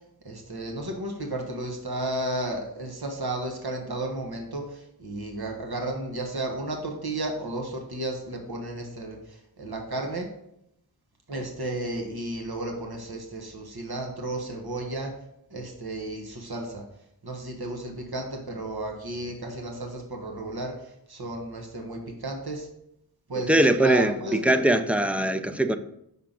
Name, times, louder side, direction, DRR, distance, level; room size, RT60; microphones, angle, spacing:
voice 1, 0.2-10.3 11.3-15.1 15.5-16.8 17.2-22.7 23.3-24.6, right 1 dB, 70° right, 1.2 m, -33 dB
voice 2, 23.5-25.8, right 1 dB, 5° right, 0.4 m, -21 dB
5.6 x 5.6 x 3.8 m
wide cardioid pair, 45°, 39 cm